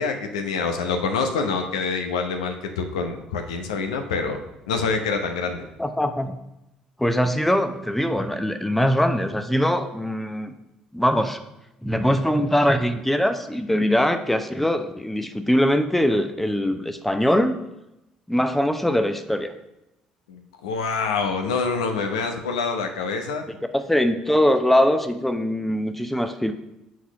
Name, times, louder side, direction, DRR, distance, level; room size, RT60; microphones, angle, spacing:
voice 1, 0.0-4.4 4.7-5.6 20.3-23.4, left 4 dB, 80° left, 5 dB, 0.7 m, -26 dB
voice 2, 5.8-6.4 7.0-10.5 10.9-11.4 11.8-17.6 18.3-19.5 23.5-26.5, equal, 5° left, 8 dB, 0.7 m, -22 dB
6.1 x 4.2 x 5.7 m, 0.90 s
hypercardioid pair, 55°, 3 cm